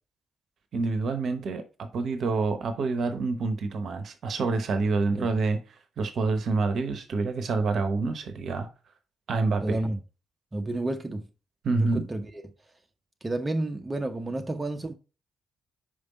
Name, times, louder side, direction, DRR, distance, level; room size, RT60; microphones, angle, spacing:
voice 1, 0.7-5.6 6.0-8.7 9.3-9.8 11.6-12.0, right 3 dB, 50° right, 0.9 m, -27 dB
voice 2, 9.6-10.0 10.5-11.3 11.7-12.4 13.2-14.9, right 2 dB, 20° right, 0.9 m, -31 dB
5.3 x 5.2 x 3.9 m
figure-of-eight pair, 40°, 0 cm